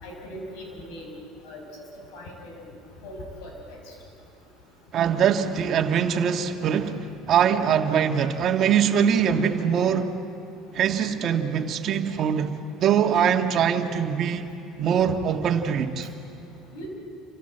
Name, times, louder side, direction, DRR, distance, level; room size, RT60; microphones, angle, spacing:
voice 1, 0.0-1.1 1.4-1.6 2.1-2.5 3.0-3.8 15.1-15.2 16.7-16.9, left 1 dB, 80° left, 6.6 m, -39 dB
voice 2, 4.9-10.1 10.7-14.5 14.8-16.1, right 8 dB, 50° right, 1.7 m, -23 dB
28.5 x 25.0 x 8.0 m
supercardioid pair, 115°, 0 cm